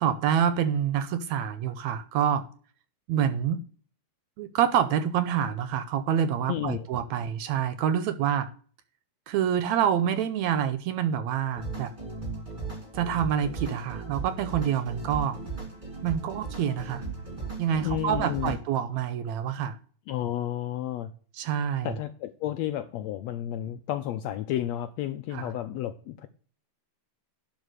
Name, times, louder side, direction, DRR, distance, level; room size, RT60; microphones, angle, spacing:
voice 1, 0.0-2.5 3.1-3.6 4.4-8.5 9.3-11.9 12.9-15.4 16.0-17.0 17.6-19.8 21.4-22.0 25.3-25.5, right 9 dB, 75° right, 1.8 m, -27 dB
voice 2, 6.5-6.9 17.8-18.6 20.1-21.1 21.8-26.3, left 12 dB, 80° left, 1.6 m, -32 dB
sound 1, 11.5-18.6, right 4 dB, 15° right, 2.2 m, -37 dB
12.0 x 4.4 x 6.5 m
omnidirectional pair, 3.6 m